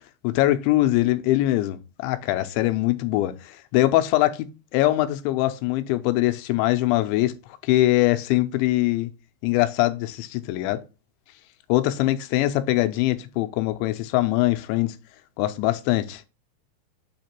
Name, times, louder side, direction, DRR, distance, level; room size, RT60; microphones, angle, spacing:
voice 1, 0.2-7.3 7.6-9.1 9.4-10.8 11.7-15.0 15.4-16.3, left 16 dB, 90° left, 2.9 m, -22 dB
7.8 x 3.0 x 4.3 m
omnidirectional pair, 5.2 m